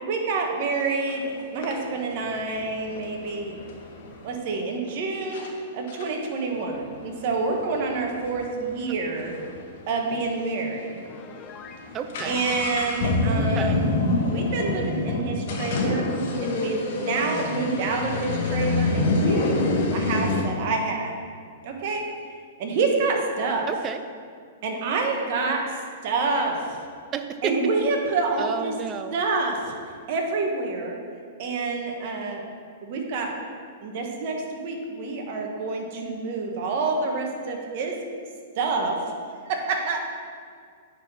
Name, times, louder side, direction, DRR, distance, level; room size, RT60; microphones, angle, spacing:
voice 1, 0.0-3.5 4.2-9.3 9.9-10.9 12.2-14.0 14.3-16.1 16.4-21.1 21.6-22.0 22.6-23.7 24.6-25.6 26.0-26.6 27.4-28.7 29.1-29.7 30.1-31.0 31.4-32.4 32.8-33.3 33.8-38.0 38.6-39.0 39.4-40.0, right 3 dB, 50° right, 1 dB, 1.5 m, -27 dB
sound 1, 1.1-1.2 1.6-4.3 4.9-5.0 5.3-5.5 5.9-9.6 9.8-9.9 10.1-10.2 10.8-11.0 11.3-20.4, left 2 dB, 60° left, 1.5 m, -26 dB
Piano, 11.0-11.9, left 5 dB, 25° left, 0.6 m, -44 dB
voice 2, 11.9-12.4 13.3-13.8 23.7-24.0 27.1-27.6 28.4-29.1, right 7 dB, 25° right, 9 dB, 0.5 m, -31 dB
9.4 x 4.3 x 5.7 m, 2.1 s
hypercardioid pair, 135°, 0 cm